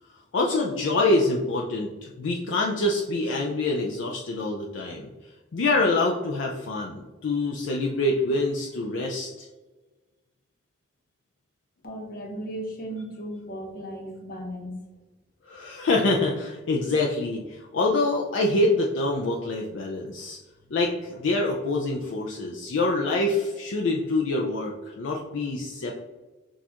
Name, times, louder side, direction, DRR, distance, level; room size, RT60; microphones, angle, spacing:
voice 1, 0.3-5.1 5.5-9.5 15.5-20.4 20.7-25.9, left 2 dB, 70° left, 0 dB, 0.4 m, -25 dB
voice 2, 11.8-14.7, right 1 dB, 50° left, 1 dB, 0.9 m, -36 dB
6.2 x 2.4 x 2.8 m, 1.2 s
head